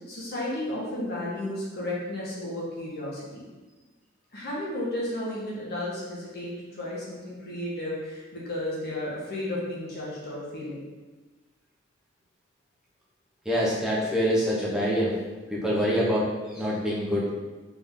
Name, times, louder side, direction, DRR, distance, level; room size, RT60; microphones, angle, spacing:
voice 1, 0.1-3.4 4.3-10.8, left 1 dB, 55° left, -6 dB, 1.5 m, -33 dB
voice 2, 13.4-15.2 15.5-17.3, equal, 5° right, -6 dB, 1.0 m, -25 dB
3.9 x 3.5 x 3.8 m, 1.2 s
head